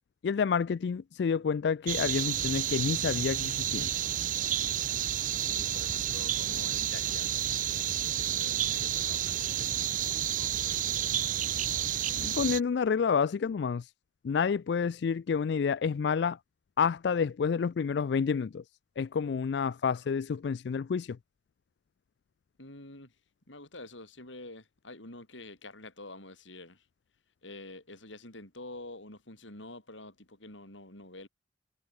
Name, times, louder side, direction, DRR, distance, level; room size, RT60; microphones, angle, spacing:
voice 1, 0.2-3.9 12.2-13.9 14.2-16.4 16.8-18.6 19.0-21.2, left 6 dB, 65° left, 0.3 m, -29 dB
sound 1, 1.9-12.6, right 10 dB, 45° right, 0.6 m, -30 dB
voice 2, 5.5-11.1 22.6-23.1 23.5-26.9 27.4-31.3, left 2 dB, 85° left, 7.9 m, -48 dB
head